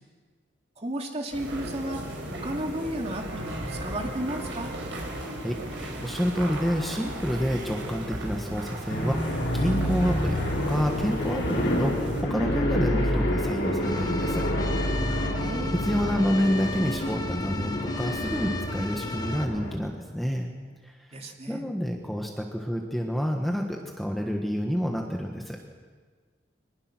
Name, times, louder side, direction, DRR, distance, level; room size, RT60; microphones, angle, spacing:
voice 1, 0.8-2.0 2.3-4.7 15.2-15.7 21.1-21.6, right 1 dB, 35° right, 2 dB, 2.4 m, -33 dB
sound 1, 1.3-12.2, right 1 dB, 70° right, 5.4 m, -36 dB
voice 2, 5.2-14.5 15.8-20.5 20.8-21.1 21.5-25.6, equal, ahead, 1 dB, 1.5 m, -29 dB
sound 2, 8.9-19.8, equal, 85° left, 5.8 m, -28 dB
sound 3, 13.8-19.4, left 3 dB, 20° left, 1.2 m, -37 dB
24.0 x 20.0 x 6.2 m, 1.5 s
head